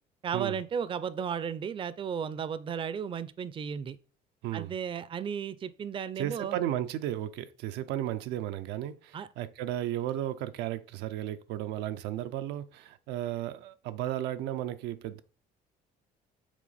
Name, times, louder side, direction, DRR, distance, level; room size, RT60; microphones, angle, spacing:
voice 1, 0.2-4.0 4.5-6.6 9.1-9.3, right 7 dB, 30° right, 0.4 m, -34 dB
voice 2, 4.4-4.7 6.2-15.2, right 12 dB, 90° right, 0.5 m, -34 dB
6.1 x 3.9 x 4.0 m
cardioid pair, 110°, 17 cm